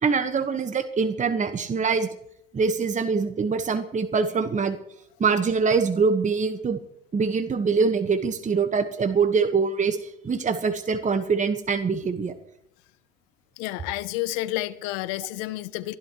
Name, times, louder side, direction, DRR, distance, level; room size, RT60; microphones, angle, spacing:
voice 1, 0.0-2.1 2.5-4.8 5.2-6.8 7.1-12.3, right 5 dB, 25° right, 1.4 m, -24 dB
voice 2, 13.6-16.0, left 17 dB, 65° left, 0.8 m, -30 dB
29.5 x 11.5 x 3.1 m
hypercardioid pair, 75°, 30 cm